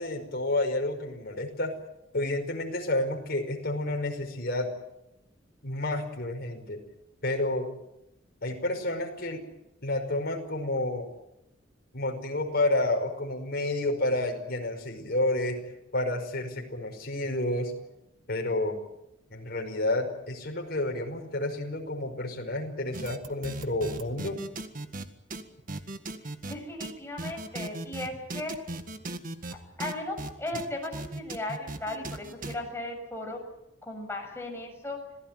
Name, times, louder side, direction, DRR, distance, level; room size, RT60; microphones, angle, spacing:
voice 1, 0.0-1.8 2.1-4.7 5.6-6.8 7.2-7.7 8.4-9.4 9.8-11.1 11.9-15.6 15.9-17.7 18.3-18.8 19.3-24.4, left 1 dB, 55° left, 3 dB, 5.4 m, -30 dB
sound 1, 22.9-25.1 25.3-25.4 25.7-26.6 26.8-26.9 27.2-29.5 29.8-32.6, right 2 dB, 45° right, 1.9 m, -37 dB
voice 2, 26.4-28.6 29.5-33.4 33.8-35.0, left 1 dB, 15° left, 1 dB, 7.1 m, -36 dB
26.5 x 17.5 x 9.0 m, 0.84 s
head